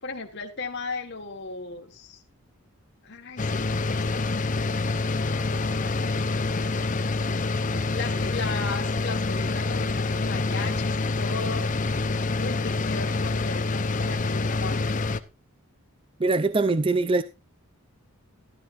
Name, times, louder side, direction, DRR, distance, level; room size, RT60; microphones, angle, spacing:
voice 1, 0.0-2.2 3.0-4.8 5.2-6.5 7.9-11.7 12.4-14.8, left 4 dB, 50° left, 1.5 m, -37 dB
sound 1, 3.4-15.2, left 3 dB, 35° left, 0.7 m, -26 dB
voice 2, 16.2-17.2, right 3 dB, 25° right, 0.4 m, -22 dB
12.5 x 12.5 x 2.5 m
head